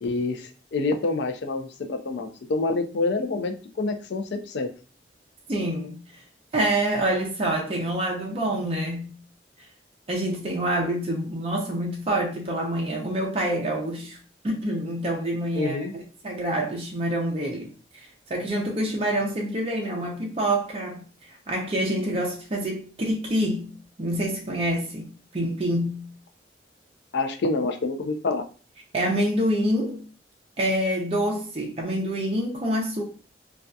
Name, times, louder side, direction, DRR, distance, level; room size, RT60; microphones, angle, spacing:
voice 1, 0.0-4.7 15.5-15.9 27.1-28.4, left 3 dB, 70° left, 0.4 m, -27 dB
voice 2, 5.5-6.0 6.5-9.2 10.1-14.2 14.4-21.0 21.5-26.1 28.9-30.1 30.6-33.0, right 1 dB, 30° right, 0.5 m, -27 dB
2.6 x 2.3 x 2.2 m
head